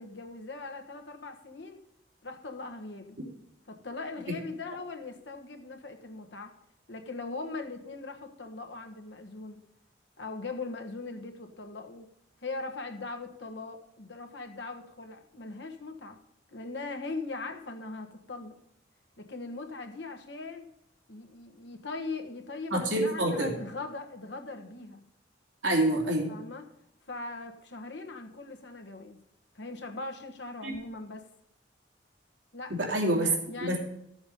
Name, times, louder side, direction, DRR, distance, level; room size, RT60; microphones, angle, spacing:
voice 1, 0.0-1.8 2.2-3.2 3.7-6.5 6.9-9.6 10.2-12.1 12.4-16.2 16.5-18.6 19.2-20.6 21.1-25.0 26.3-26.6 27.1-29.2 29.5-31.2 32.5-32.7 33.2-33.8, left 3 dB, 70° left, 4 dB, 1.4 m, -40 dB
voice 2, 22.7-23.5 25.6-26.3 30.6-30.7 32.7-33.3 33.6-33.8, right 1 dB, 75° right, 0 dB, 2.7 m, -27 dB
12.0 x 7.0 x 5.4 m, 0.77 s
head